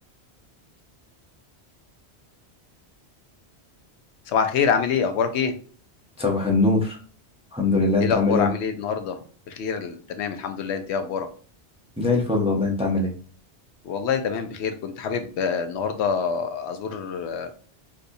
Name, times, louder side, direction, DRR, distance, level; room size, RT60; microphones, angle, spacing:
voice 1, 4.3-5.6 8.0-9.2 9.5-11.3 13.8-17.5, left 6 dB, 80° left, 7 dB, 0.8 m, -26 dB
voice 2, 6.2-7.0 7.5-8.5 12.0-13.1, left 3 dB, 5° right, -1 dB, 0.5 m, -21 dB
4.0 x 2.7 x 2.6 m, 0.42 s
omnidirectional pair, 1.1 m